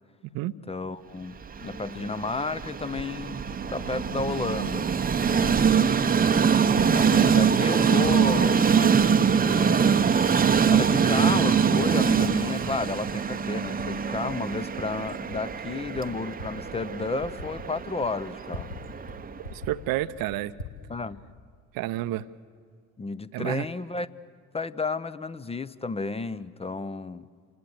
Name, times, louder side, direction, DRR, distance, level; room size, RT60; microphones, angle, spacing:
voice 1, 0.7-1.4 1.6-3.4 3.7-4.9 5.3-5.6 6.9-8.7 9.2-10.1 10.7-18.8 20.9-21.2 23.0-24.1 24.5-27.3, left 3 dB, 15° left, 15 dB, 0.6 m, -32 dB
Train, 1.4-19.5, right 6 dB, 20° right, 0.8 m, -24 dB
Typing, 3.5-4.3 4.9-5.5 5.8-6.3 6.6-7.7 8.0-9.2 9.7-9.8 10.4-11.2 11.5-13.9 14.2-18.8 19.1-19.2 19.4-20.8, left 1 dB, 85° left, 2.2 m, -42 dB
voice 2, 19.5-20.5 21.7-22.2 23.3-23.7, right 15 dB, 55° right, 14 dB, 0.8 m, -29 dB
28.5 x 20.0 x 8.0 m, 2.1 s
hypercardioid pair, 60°, 42 cm